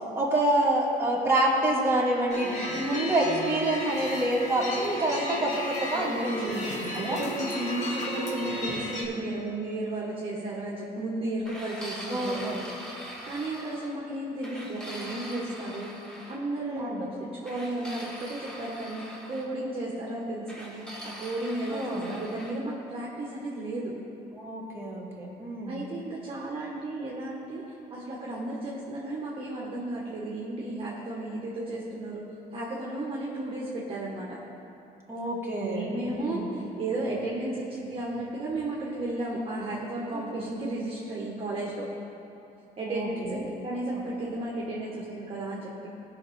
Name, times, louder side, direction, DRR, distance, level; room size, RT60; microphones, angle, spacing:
voice 1, 0.2-7.2 12.1-12.6 16.6-17.1 21.7-22.1 24.4-25.8 35.1-36.4 40.1-40.4 42.8-43.4, right 1 dB, 15° right, -5 dB, 2.2 m, -28 dB
sound 1, 2.3-9.0, equal, 45° left, 2.0 m, -33 dB
voice 2, 5.9-6.6 6.9-12.7 13.2-15.9 16.3-24.0 25.7-32.2 32.5-34.4 35.6-41.9 42.8-45.9, right 2 dB, 35° right, -5 dB, 1.6 m, -34 dB
sound 2, 11.4-14.0 14.4-16.4 17.4-19.5 20.5-22.6, equal, 5° left, 1.6 m, -42 dB
17.0 x 5.9 x 3.6 m, 3.0 s
cardioid pair, 110°, 17 cm